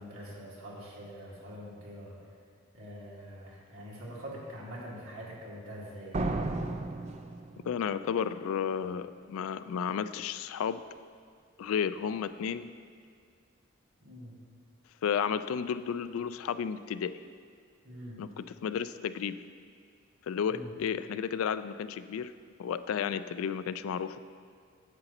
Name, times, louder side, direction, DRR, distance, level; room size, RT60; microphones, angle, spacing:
voice 1, 0.0-2.2 2.7-6.2 14.0-14.3 17.8-18.2 20.5-20.7, equal, 75° right, -5 dB, 2.0 m, -44 dB
sound 1, 6.1-8.0, right 2 dB, 35° right, 0.4 m, -33 dB
voice 2, 7.6-10.8 11.6-12.7 15.0-17.1 18.2-19.4 20.3-22.3 22.6-24.2, left 7 dB, 85° left, 13 dB, 0.3 m, -32 dB
9.6 x 7.8 x 3.0 m, 2.2 s
head